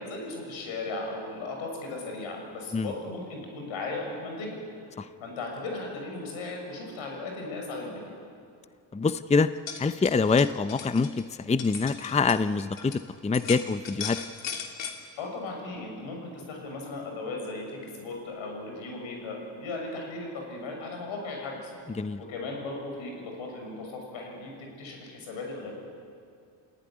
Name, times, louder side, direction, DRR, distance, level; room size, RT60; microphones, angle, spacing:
voice 1, 0.0-4.6 5.2-8.1 15.2-21.7 22.2-25.7, left 2 dB, 85° left, 1 dB, 7.0 m, -37 dB
voice 2, 8.9-9.5 9.8-14.2 22.0-22.2, left 4 dB, 15° left, 13 dB, 0.6 m, -25 dB
sound 1, 9.5-13.0 13.3-15.0, left 7 dB, 65° left, 3.1 m, -38 dB
28.5 x 15.5 x 9.8 m, 2.4 s
supercardioid pair, 70°, 47 cm